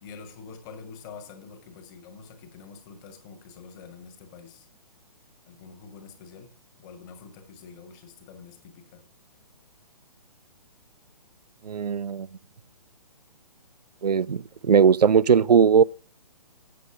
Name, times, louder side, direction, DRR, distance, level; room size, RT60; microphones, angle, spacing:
voice 1, 0.0-4.7 5.5-6.5 6.8-9.0, left 5 dB, 30° left, 2.4 m, -46 dB
voice 2, 11.6-12.3 14.0-15.8, right 7 dB, 85° right, 0.4 m, -19 dB
8.5 x 8.3 x 4.8 m
figure-of-eight pair, 135°, 20 cm